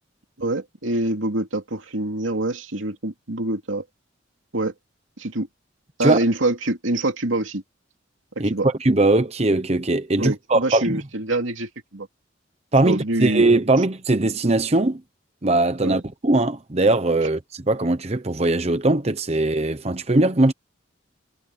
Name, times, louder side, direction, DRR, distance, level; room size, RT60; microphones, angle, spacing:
voice 1, 0.4-3.8 4.5-4.7 5.2-5.5 6.0-7.6 8.4-8.7 10.2-12.1 12.8-13.5 15.8-16.0, right 2 dB, 90° right, 2.7 m, -25 dB
voice 2, 8.8-11.0 12.7-15.0 15.4-17.4 17.7-20.5, right 2 dB, 35° right, 0.9 m, -20 dB
head